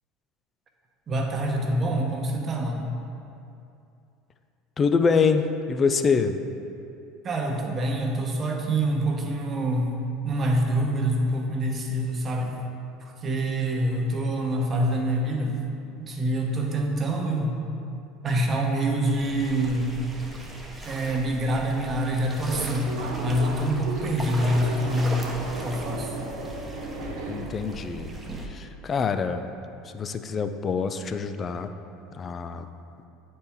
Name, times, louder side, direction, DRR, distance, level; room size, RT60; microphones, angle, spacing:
voice 1, 1.1-3.0 7.2-10.0 10.2-12.6 13.0-15.6 16.0-17.6 18.2-20.0 20.8-26.1, right 1 dB, 35° right, 2 dB, 1.0 m, -26 dB
voice 2, 4.8-6.4 27.3-28.1 28.5-29.5 29.9-31.7 32.2-32.7, left 5 dB, 35° left, 8 dB, 0.4 m, -25 dB
sound 1, 19.1-28.5, right 1 dB, 15° right, 1.0 m, -39 dB
Subway metro underground, 22.1-27.7, right 2 dB, 65° right, 1.4 m, -35 dB
8.9 x 4.3 x 3.6 m, 2.6 s
hypercardioid pair, 80°, 0 cm